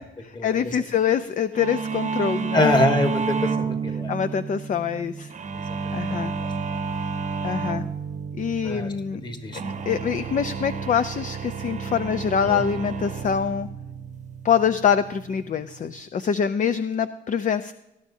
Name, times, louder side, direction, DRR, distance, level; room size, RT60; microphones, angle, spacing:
voice 1, 0.0-2.8 4.1-5.3 5.9-6.3 7.4-7.8 8.4-9.2 9.9-13.7 14.4-17.7, left 7 dB, 40° left, 11 dB, 0.5 m, -25 dB
sound 1, 1.5-16.0, right 5 dB, 35° right, 0.9 m, -31 dB
voice 2, 2.5-4.1 5.8-5.9 8.6-8.9 9.2-9.6 12.5-12.6, left 1 dB, 20° left, 6 dB, 1.6 m, -24 dB
19.0 x 11.5 x 2.7 m, 0.92 s
cardioid pair, 90°, 20 cm